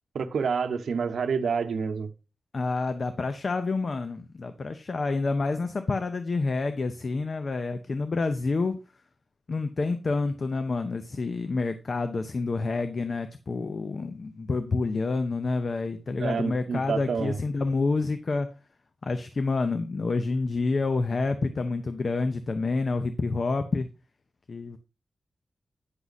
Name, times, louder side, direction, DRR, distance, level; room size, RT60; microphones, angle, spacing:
voice 1, 0.1-2.1 16.2-17.4, right 5 dB, 90° right, 0.8 m, -28 dB
voice 2, 2.5-8.8 9.5-18.5 19.0-23.9 24.5-24.8, left 3 dB, 40° left, 0.6 m, -28 dB
9.7 x 6.1 x 4.0 m
wide cardioid pair, 160°, 0 cm